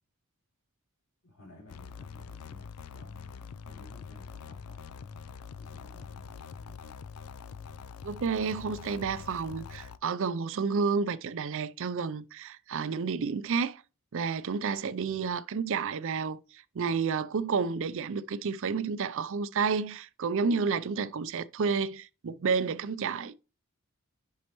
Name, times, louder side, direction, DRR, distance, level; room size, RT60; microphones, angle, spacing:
voice 1, 1.2-5.1 5.6-7.0 15.0-15.3, left 1 dB, 65° left, 3.9 m, -55 dB
sound 1, 1.7-10.0, left 6 dB, 85° left, 0.5 m, -44 dB
voice 2, 8.0-13.8 14.1-23.3, right 5 dB, 60° right, 0.5 m, -30 dB
8.5 x 5.5 x 3.0 m
head